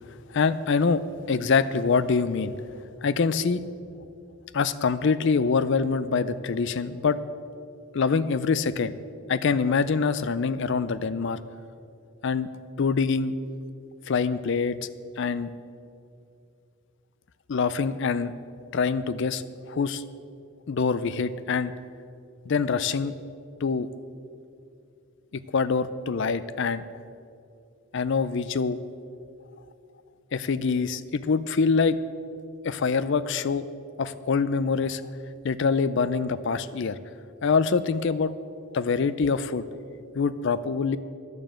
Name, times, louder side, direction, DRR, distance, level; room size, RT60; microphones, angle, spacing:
voice 1, 0.3-1.0 1.3-2.5 3.0-3.6 4.5-7.2 7.9-9.0 9.3-11.4 12.2-12.5 12.8-13.3 14.1-14.8 15.2-15.5 17.5-18.3 18.7-20.0 20.7-21.7 22.5-23.1 23.6-23.9 25.3-26.8 27.9-28.8 30.3-32.0 32.6-33.7 34.0-35.1 35.4-37.0 37.4-38.3 38.7-39.6 40.2-41.0, left 5 dB, 55° left, 15 dB, 0.4 m, -25 dB
11.0 x 7.1 x 7.5 m, 2.5 s
head